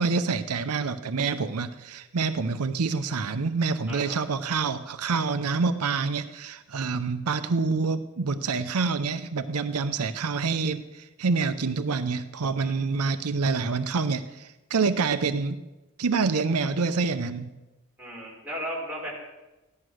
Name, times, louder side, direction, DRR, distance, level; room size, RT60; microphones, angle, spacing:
voice 1, 0.0-15.6 16.0-17.5, right 4 dB, 85° right, 10 dB, 0.7 m, -27 dB
voice 2, 18.0-19.1, equal, 5° right, -5 dB, 5.3 m, -35 dB
15.0 x 11.0 x 6.3 m, 1.1 s
head